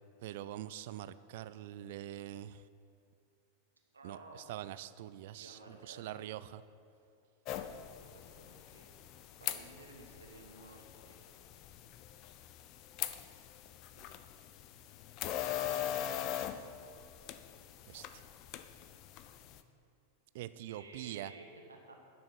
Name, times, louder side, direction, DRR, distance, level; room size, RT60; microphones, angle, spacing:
voice 1, 0.2-2.6 4.0-6.6 15.6-16.0 16.4-16.6 17.9-18.2 20.3-21.3, right 13 dB, 50° right, 15 dB, 0.3 m, -45 dB
voice 2, 3.9-4.4 5.3-6.3 8.1-8.9 9.4-11.3 13.9-14.1 20.7-22.0, right 2 dB, 75° right, 2 dB, 1.4 m, -54 dB
sound 1, 7.4-19.6, left 11 dB, 40° left, 0.5 m, -42 dB
10.5 x 6.3 x 6.1 m, 2.6 s
figure-of-eight pair, 90°, 0 cm